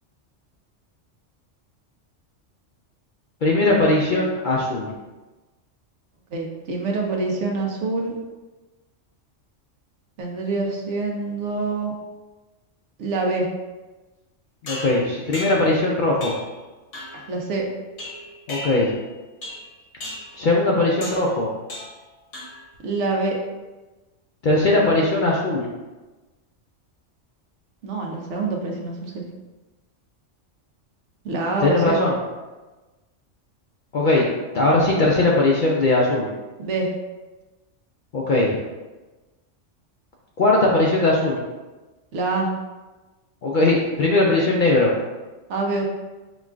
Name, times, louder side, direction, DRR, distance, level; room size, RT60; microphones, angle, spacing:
voice 1, 3.4-4.9 14.6-16.3 18.5-18.9 20.3-21.5 24.4-25.7 31.6-32.1 33.9-34.2 34.5-36.3 38.1-38.6 40.4-41.4 43.4-44.9, left 2 dB, 60° left, -3 dB, 0.5 m, -19 dB
voice 2, 6.3-8.2 10.2-11.9 13.0-13.5 17.1-17.6 22.8-23.4 27.8-29.1 31.2-32.0 36.6-36.9 42.1-42.5 45.5-45.8, right 3 dB, 70° right, 0 dB, 1.0 m, -25 dB
sound 1, 14.7-15.8 16.2-16.5 16.9-17.3 18.0-19.1 19.4-19.7 20.0-20.4 21.0-21.3 21.7-22.0 22.3-22.8, left 2 dB, 75° left, 1.3 m, -36 dB
5.8 x 2.3 x 2.4 m, 1.2 s
omnidirectional pair, 1.3 m